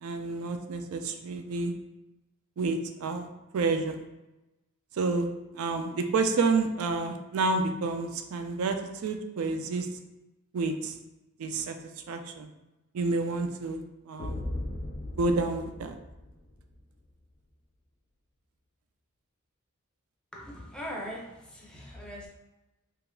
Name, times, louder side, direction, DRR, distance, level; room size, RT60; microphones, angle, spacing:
voice 1, 0.0-1.7 2.6-3.3 3.5-4.0 5.0-5.3 5.5-9.9 10.5-10.9 11.4-11.8 12.1-12.5 12.9-14.4 15.2-16.0, right 3 dB, 75° right, 6 dB, 0.4 m, -29 dB
sound 1, 14.2-16.8, left 1 dB, 40° left, 0.3 m, -37 dB
voice 2, 20.3-22.3, equal, 5° left, -4 dB, 0.6 m, -40 dB
3.4 x 2.9 x 2.3 m, 0.99 s
head